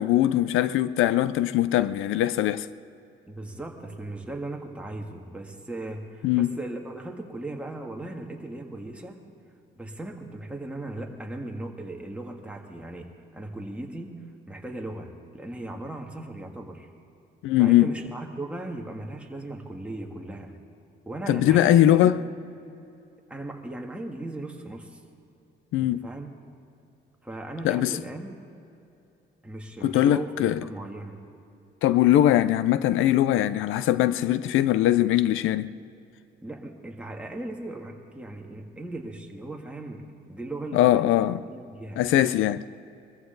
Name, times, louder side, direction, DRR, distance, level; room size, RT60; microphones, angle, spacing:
voice 1, 0.0-2.7 6.2-6.5 17.4-17.9 21.3-22.2 25.7-26.0 27.6-27.9 29.8-30.6 31.8-35.8 40.7-41.4 42.0-42.6, left 13 dB, 85° left, 0.5 m, -21 dB
voice 2, 3.3-9.2 9.8-14.2 14.5-16.9 17.6-20.5 21.1-22.1 23.3-25.0 25.8-26.3 27.2-28.4 29.4-31.3 36.4-42.0, right 2 dB, 5° right, 1.9 m, -37 dB
22.0 x 14.5 x 3.9 m
cardioid pair, 90°, 20 cm